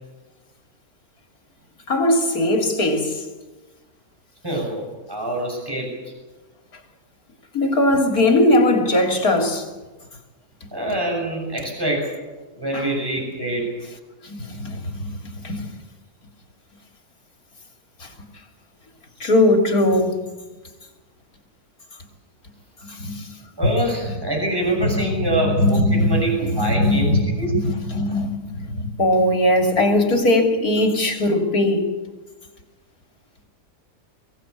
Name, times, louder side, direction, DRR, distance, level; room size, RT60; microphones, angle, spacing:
voice 1, 1.9-3.2 7.5-9.7 12.7-12.9 14.2-15.6 18.0-18.1 19.2-20.2 22.8-23.4 24.8-31.9, left 1 dB, 85° left, 3.5 m, -20 dB
voice 2, 4.4-5.9 10.7-12.1 12.6-13.7 23.6-27.5, right 1 dB, 15° right, 6.9 m, -25 dB
23.5 x 17.5 x 8.4 m
omnidirectional pair, 1.5 m